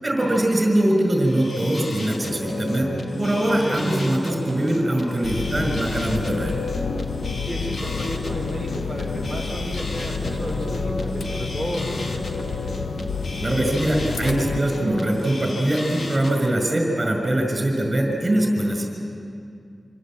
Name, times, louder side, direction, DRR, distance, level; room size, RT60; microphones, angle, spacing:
voice 1, 0.0-2.9 3.2-6.7 13.4-18.9, right 1 dB, 25° right, 2 dB, 5.9 m, -22 dB
sound 1, 1.1-16.5, left 2 dB, 60° left, 2.3 m, -32 dB
sound 2, 5.2-14.6, left 5 dB, 90° left, 0.8 m, -30 dB
voice 2, 7.4-12.8, equal, 20° left, -1 dB, 4.6 m, -32 dB
27.5 x 25.0 x 7.6 m, 2.4 s
wide cardioid pair, 135°, 0 cm